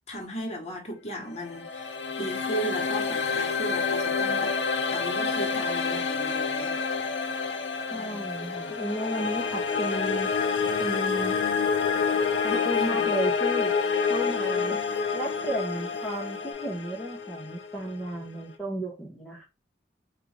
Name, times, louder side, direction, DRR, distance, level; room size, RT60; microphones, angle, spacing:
voice 1, 0.1-4.6 4.9-6.8 7.3-7.5 7.9-8.3 12.5-13.1, right 1 dB, 35° left, 1.0 m, -36 dB
sound 1, 1.3-18.4, left 5 dB, 85° left, 0.6 m, -28 dB
sound 2, 6.3-16.5, left 5 dB, 20° right, 1.2 m, -41 dB
voice 2, 7.9-10.3 10.8-11.4 12.4-13.7 14.1-14.8 15.1-19.4, right 1 dB, ahead, 0.7 m, -33 dB
3.6 x 2.4 x 3.2 m
head